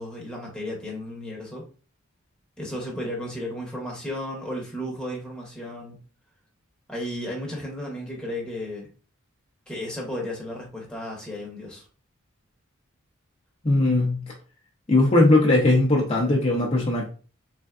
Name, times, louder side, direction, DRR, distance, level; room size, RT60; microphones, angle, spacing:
voice 1, 0.0-1.7 2.6-6.0 6.9-8.9 9.7-11.9, left 1 dB, 5° left, -3 dB, 0.9 m, -34 dB
voice 2, 13.6-14.2 14.9-17.1, left 2 dB, 30° left, -3 dB, 0.7 m, -19 dB
3.7 x 3.3 x 2.4 m, 0.39 s
head